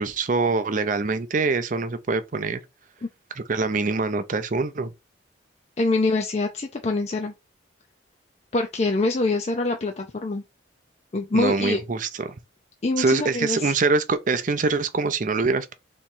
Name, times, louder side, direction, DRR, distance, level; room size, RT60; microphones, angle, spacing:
voice 1, 0.0-2.6 3.4-4.9 11.3-12.4 13.0-15.7, right 3 dB, 40° right, 0.5 m, -24 dB
voice 2, 5.8-7.3 8.5-10.4 11.1-11.8 12.8-13.7, left 2 dB, 35° left, 0.4 m, -24 dB
3.5 x 3.0 x 4.3 m
head